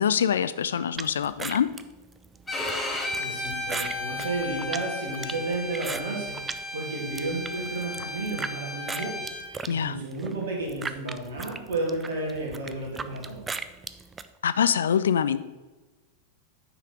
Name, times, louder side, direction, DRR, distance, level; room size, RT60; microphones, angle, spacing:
voice 1, 0.0-1.7 9.7-9.9 14.4-15.4, left 8 dB, 65° left, 15 dB, 0.4 m, -24 dB
sound 1, 1.0-6.6 7.0-8.5 8.9-14.3, right 4 dB, 15° right, 0.4 m, -37 dB
Bowed string instrument, 2.5-9.4, left 2 dB, 10° left, 1.6 m, -34 dB
voice 2, 2.9-9.2 9.7-13.4, right 2 dB, 60° right, -1 dB, 2.6 m, -32 dB
9.7 x 5.8 x 4.5 m, 1.2 s
figure-of-eight pair, 90°, 0 cm